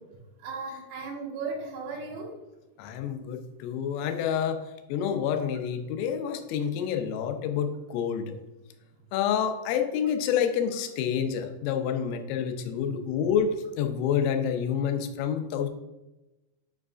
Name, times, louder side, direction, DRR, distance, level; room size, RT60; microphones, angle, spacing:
voice 1, 0.4-2.3, right 4 dB, 70° right, -3 dB, 3.4 m, -36 dB
voice 2, 2.8-4.6 4.9-8.2 9.1-13.5 13.8-15.7, left 8 dB, 90° left, 6 dB, 3.2 m, -28 dB
8.9 x 4.8 x 2.4 m, 1.0 s
omnidirectional pair, 5.7 m